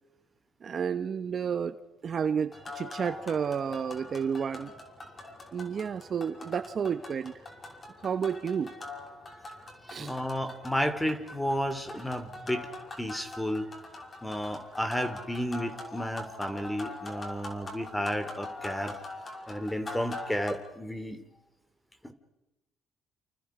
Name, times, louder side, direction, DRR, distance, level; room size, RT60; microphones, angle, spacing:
voice 1, 0.6-1.7 2.0-4.7 5.5-7.3 8.0-8.7 9.9-10.1, right 7 dB, 40° right, 11 dB, 1.2 m, -31 dB
sound 1, 2.5-20.6, left 2 dB, 25° left, 5.9 m, -43 dB
voice 2, 10.0-12.7 13.0-13.7 14.2-19.0 19.5-21.2 22.0-22.1, equal, 5° left, 10 dB, 3.0 m, -32 dB
29.5 x 29.0 x 5.1 m, 1.0 s
cardioid pair, 120°, 0 cm